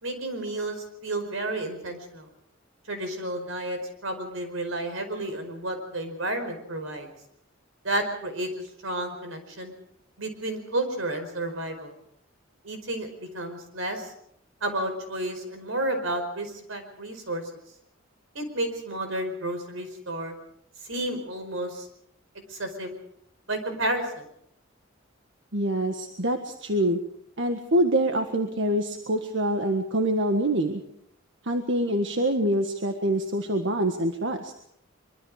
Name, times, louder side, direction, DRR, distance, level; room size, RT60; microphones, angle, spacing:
voice 1, 0.0-2.3 2.9-7.1 7.8-8.5 8.8-9.7 10.2-11.9 12.6-14.1 14.6-17.4 18.3-20.3 20.8-21.9 22.5-22.9 23.5-24.3, right 1 dB, 85° right, 7 dB, 4.9 m, -31 dB
voice 2, 25.5-27.0 27.4-30.8 31.4-34.5, right 1 dB, 65° right, 5 dB, 1.7 m, -25 dB
24.0 x 23.5 x 4.9 m, 0.72 s
head